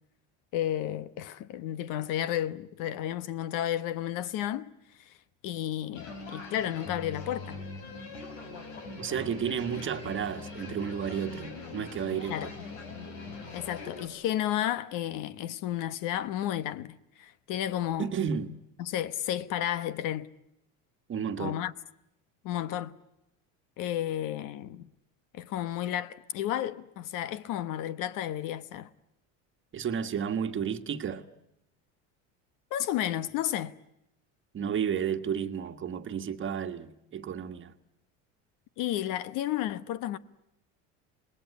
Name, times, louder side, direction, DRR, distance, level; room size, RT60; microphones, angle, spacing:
voice 1, 0.5-4.7 5.0-5.1 5.4-7.6 12.3-12.5 13.5-18.1 18.8-20.3 21.4-21.7 22.4-23.0 23.8-24.9 25.3-28.9 32.7-33.7 38.8-40.2, left 12 dB, 60° left, 1.1 m, -32 dB
sound 1, 5.9-14.1, left 3 dB, 85° left, 6.7 m, -42 dB
voice 2, 9.0-12.5 18.0-18.5 21.1-21.6 29.7-31.2 34.5-37.7, right 7 dB, 35° right, 1.5 m, -32 dB
27.0 x 20.0 x 9.6 m
supercardioid pair, 115°, 35 cm